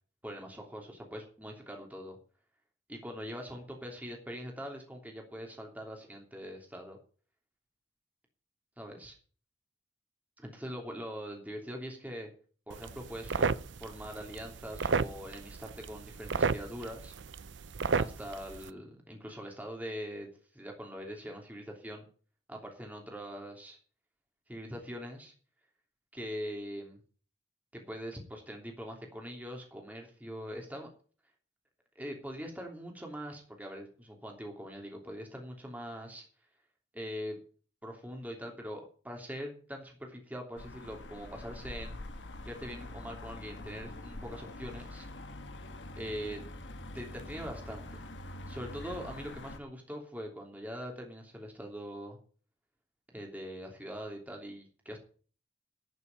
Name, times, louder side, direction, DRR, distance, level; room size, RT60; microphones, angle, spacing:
voice 1, 0.2-2.2 2.9-7.0 8.8-9.1 10.4-12.3 12.7-17.1 18.0-22.1 22.5-23.8 24.5-25.3 26.1-27.0 27.7-30.9 31.9-36.3 36.9-37.4 37.8-42.0 42.4-45.1 46.0-46.4 46.9-48.0 48.5-52.2 53.1-55.0, equal, 10° right, 1 dB, 3.0 m, -42 dB
sound 1, 12.7-18.7, right 5 dB, 85° right, 0.6 m, -34 dB
sound 2, 40.6-49.6, left 1 dB, 80° left, 1.6 m, -45 dB
13.0 x 6.9 x 9.0 m, 0.41 s
head